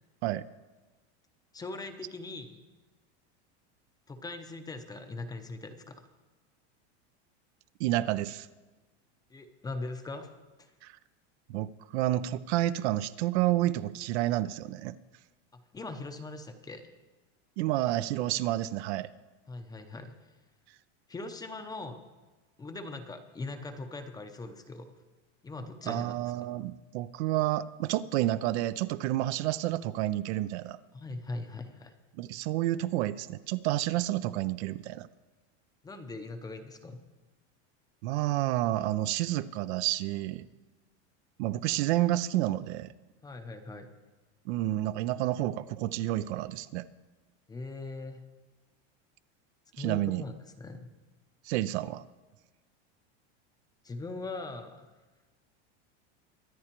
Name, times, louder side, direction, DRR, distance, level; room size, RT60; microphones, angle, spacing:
voice 1, 1.5-2.6 4.1-6.0 9.3-10.3 10.6-10.7 15.5-16.9 19.5-20.2 21.1-22.0 22.6-24.9 25.4-26.1 30.9-31.9 35.8-37.0 43.2-43.9 47.5-48.2 49.8-50.9 53.8-54.9, left 2 dB, 10° left, 7 dB, 0.6 m, -40 dB
voice 2, 7.8-8.5 10.8-10.9 11.5-14.9 17.6-19.1 25.9-30.8 32.2-35.1 38.0-40.4 41.4-42.9 44.5-46.9 49.8-50.2 51.5-52.0, right 15 dB, 70° right, 14 dB, 0.6 m, -30 dB
23.5 x 9.8 x 3.0 m, 1.2 s
supercardioid pair, 145°, 35 cm